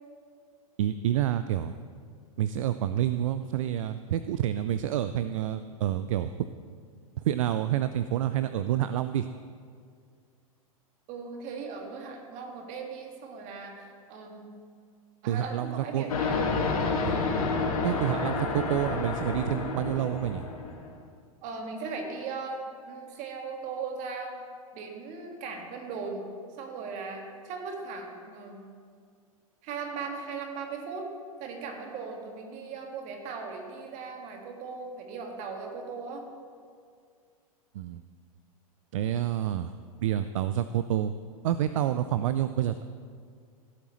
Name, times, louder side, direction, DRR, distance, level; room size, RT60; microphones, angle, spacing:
voice 1, 0.8-1.7 2.4-6.5 7.2-9.3 15.3-16.1 17.0-17.2 17.8-20.4 37.7-38.0 38.9-39.7 40.0-41.1 41.4-42.8, right 11 dB, 65° right, 12 dB, 0.4 m, -28 dB
voice 2, 11.1-14.6 15.2-16.4 21.4-24.4 24.7-26.2 26.6-28.7 29.6-31.1 31.4-36.3, right 4 dB, 45° right, 2 dB, 1.9 m, -38 dB
sound 1, 16.1-20.8, left 4 dB, 75° left, 1.7 m, -29 dB
15.5 x 8.3 x 3.1 m, 2.1 s
hypercardioid pair, 100°, 18 cm